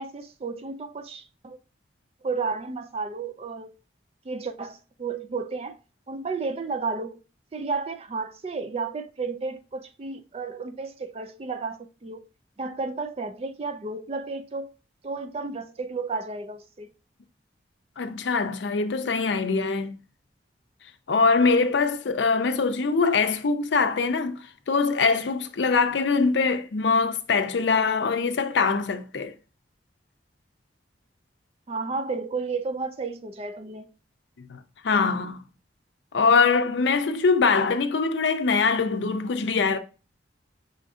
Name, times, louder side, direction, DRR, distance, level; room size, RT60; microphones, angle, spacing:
voice 1, 0.0-1.6 2.2-3.7 4.2-5.8 6.1-7.2 7.5-12.3 12.6-14.7 15.0-16.9 31.7-33.9, right 4 dB, 35° right, 0.4 m, -32 dB
voice 2, 18.0-20.0 21.1-24.4 24.7-29.3 34.5-34.6 34.8-35.4 36.1-39.8, left 4 dB, 75° left, 0.5 m, -23 dB
5.6 x 2.6 x 3.6 m
head